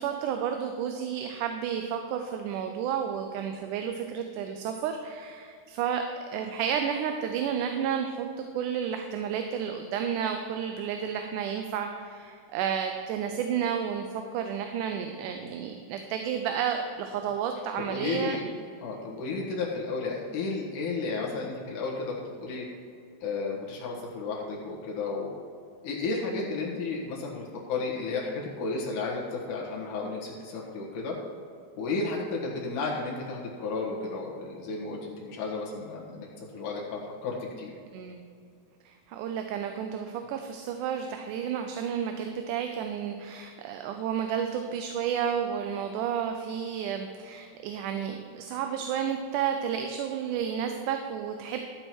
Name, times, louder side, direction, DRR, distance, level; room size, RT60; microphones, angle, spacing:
voice 1, 0.0-6.0 6.3-8.3 8.5-18.4 37.9-38.2 38.9-51.6, right 8 dB, 85° right, 5 dB, 2.2 m, -31 dB
voice 2, 17.8-18.4 18.8-22.6 23.2-25.3 25.8-31.2 31.8-37.7, left 3 dB, 85° left, -4 dB, 3.0 m, -33 dB
12.5 x 7.7 x 4.4 m, 2.3 s
omnidirectional pair, 3.5 m